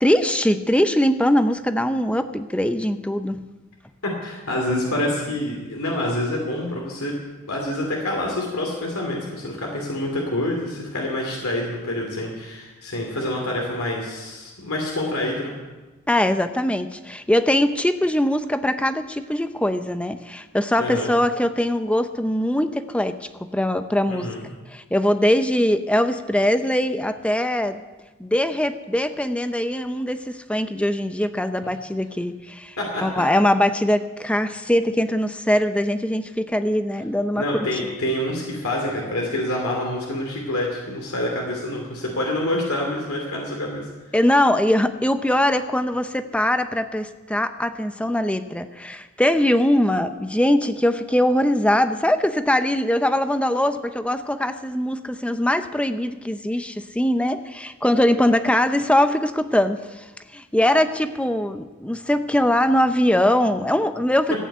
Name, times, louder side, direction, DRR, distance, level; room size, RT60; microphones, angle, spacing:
voice 1, 0.0-3.5 16.1-24.3 24.7-27.8 28.2-37.4 44.1-60.1 60.3-64.4, left 1 dB, 5° left, 9 dB, 0.6 m, -21 dB
voice 2, 4.0-7.1 7.5-15.5 20.8-21.1 24.1-24.4 32.8-33.2 37.3-43.9, left 1 dB, 90° left, -1 dB, 2.8 m, -27 dB
15.0 x 9.0 x 8.1 m, 1.2 s
head